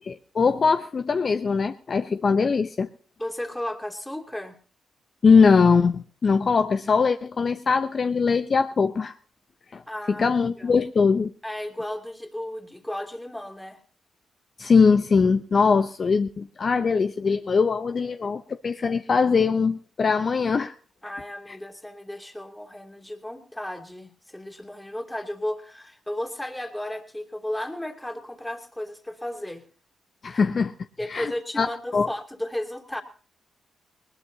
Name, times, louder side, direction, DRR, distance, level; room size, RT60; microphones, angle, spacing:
voice 1, 0.1-2.9 5.2-9.1 9.7-9.8 10.2-11.3 14.6-20.7 30.2-30.7 31.1-31.3 31.6-31.7 31.9-32.1, left 5 dB, 50° left, 8 dB, 0.7 m, -21 dB
voice 2, 3.2-4.6 9.9-10.3 10.6-10.8 11.4-13.8 21.0-29.6 30.3-30.4 31.0-33.0, left 1 dB, 10° left, 3 dB, 2.8 m, -34 dB
20.0 x 19.5 x 2.8 m, 0.41 s
supercardioid pair, 50°, 0 cm